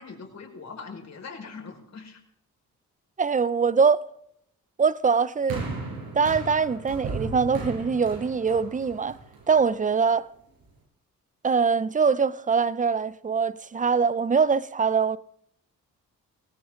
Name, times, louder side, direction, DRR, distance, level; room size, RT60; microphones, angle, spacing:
voice 1, 0.0-2.2, left 4 dB, 50° left, 5.3 m, -41 dB
voice 2, 3.2-4.1 4.8-5.7 6.1-9.2 9.5-10.3 11.4-15.2, right 5 dB, 20° right, 0.7 m, -23 dB
sound 1, 5.5-9.8 10.6-10.7, right 3 dB, 80° right, 5.7 m, -36 dB
20.0 x 18.5 x 3.9 m
supercardioid pair, 60°, 35 cm